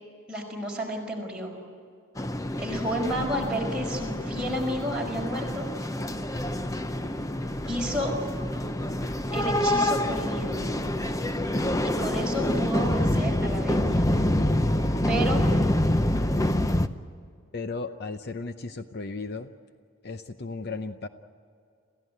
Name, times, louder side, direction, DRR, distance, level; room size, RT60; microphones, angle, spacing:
voice 1, 0.3-1.5 2.6-5.7 7.7-8.1 9.3-10.6 11.8-14.0 15.1-15.4, equal, 5° right, -2 dB, 5.1 m, -31 dB
sound 1, 2.2-16.9, left 1 dB, 15° left, 0.7 m, -26 dB
voice 2, 17.5-19.5 20.0-21.1, left 3 dB, 50° left, 9 dB, 0.7 m, -35 dB
28.0 x 15.5 x 9.5 m, 2.4 s
head